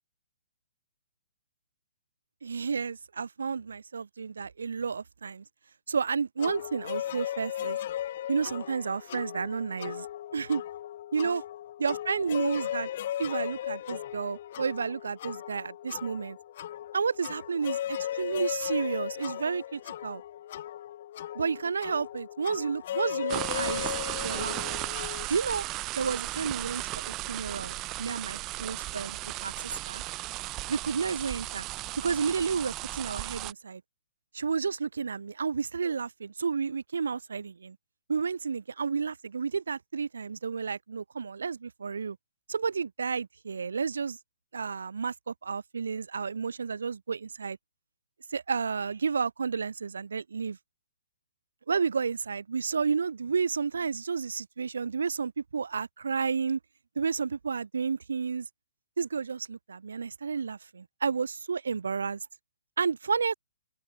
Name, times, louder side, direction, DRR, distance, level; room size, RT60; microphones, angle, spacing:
voice 1, 2.4-5.4 5.9-7.8 8.3-10.1 10.3-10.6 11.1-11.4 11.8-12.9 13.2-16.4 16.9-20.2 21.3-23.9 24.2-24.8 25.3-25.6 26.0-30.0 30.7-31.7 32.0-33.8 34.3-37.8 38.1-42.2 42.5-44.2 44.5-47.6 48.3-50.6 51.7-56.6 57.0-58.5 59.0-62.3 62.8-63.3, right 5 dB, 85° right, 4.2 m, -31 dB
sound 1, 6.4-25.2, left 12 dB, 45° left, 1.4 m, -37 dB
sound 2, 23.3-33.5, right 19 dB, 25° right, 4.7 m, -35 dB
open air
hypercardioid pair, 155°, 0 cm